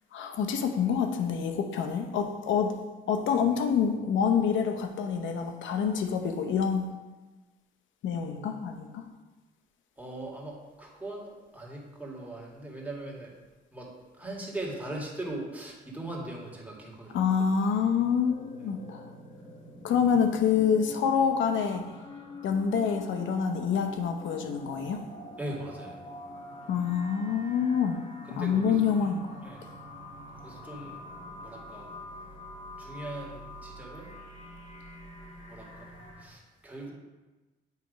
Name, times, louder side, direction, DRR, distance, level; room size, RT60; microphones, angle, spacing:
voice 1, 0.1-2.7 3.1-6.9 8.0-9.0 17.1-19.0 19.8-21.8 22.4-25.0 26.7-28.0 28.3-29.4, left 7 dB, 75° left, 6 dB, 0.7 m, -27 dB
voice 2, 10.0-13.3 13.7-13.9 14.1-17.2 25.4-26.0 28.2-28.8 29.4-29.7 30.4-31.0 31.4-31.9 32.8-34.1 35.5-35.9 36.2-36.9, right 1 dB, 10° right, -3 dB, 1.7 m, -40 dB
sound 1, 18.2-36.2, left 1 dB, 35° left, 1.5 m, -46 dB
8.1 x 3.0 x 5.1 m, 1.2 s
cardioid pair, 90°, 20 cm